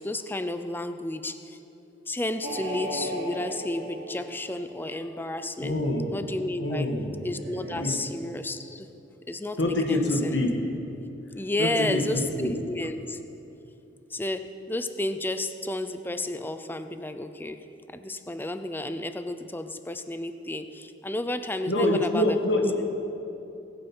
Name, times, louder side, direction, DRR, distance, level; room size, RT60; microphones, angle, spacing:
voice 1, 0.0-1.6 2.1-5.8 6.1-6.9 7.2-8.9 9.3-10.4 11.3-13.2 14.1-22.4 22.8-22.9, left 1 dB, 10° left, 10 dB, 0.5 m, -32 dB
sound 1, 2.4-5.0 7.2-7.9, equal, 55° right, 3.6 m, -36 dB
voice 2, 5.6-6.1 6.6-7.1 7.8-8.0 9.6-10.5 11.6-12.5 21.7-22.9, left 1 dB, 70° left, 2 dB, 1.8 m, -26 dB
20.0 x 8.8 x 5.6 m, 2.9 s
head